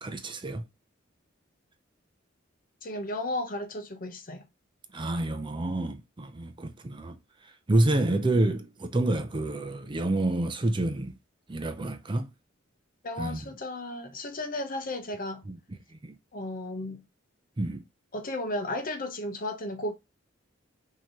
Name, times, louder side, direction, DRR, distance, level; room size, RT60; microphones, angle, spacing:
voice 1, 0.0-0.6 4.9-7.2 7.7-11.1 11.5-12.3 13.2-13.4 15.5-15.6 16.0-16.1 17.6-17.8, right 2 dB, 25° right, 0.5 m, -28 dB
voice 2, 2.8-4.4 13.0-15.4 16.3-17.0 18.1-19.9, left 1 dB, 45° left, 0.9 m, -34 dB
5.9 x 2.9 x 3.0 m
head